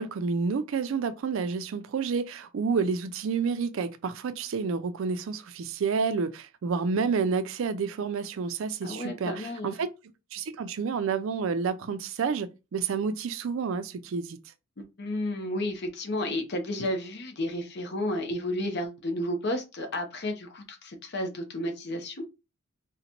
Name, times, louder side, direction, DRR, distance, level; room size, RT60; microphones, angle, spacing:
voice 1, 0.0-9.9 10.3-14.4, right 5 dB, 65° right, 0.4 m, -29 dB
voice 2, 8.8-9.8 14.8-22.2, left 1 dB, 50° left, 0.6 m, -32 dB
3.9 x 2.1 x 2.9 m
head